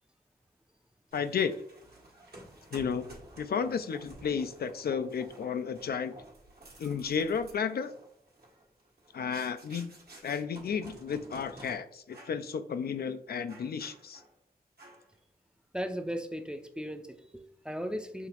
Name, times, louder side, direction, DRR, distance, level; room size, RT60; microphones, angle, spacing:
voice 1, 1.1-1.5 2.7-6.1 6.8-7.9 9.1-9.9 10.2-14.2, left 6 dB, 75° left, 0.4 m, -33 dB
sound 1, 1.1-11.8 12.1-12.4 12.8-13.0 13.5-14.4 14.8-15.2, right 2 dB, 70° right, 1.3 m, -52 dB
voice 2, 15.7-18.3, equal, 5° right, 0.5 m, -37 dB
5.7 x 2.9 x 2.9 m
wide cardioid pair, 70°, 16 cm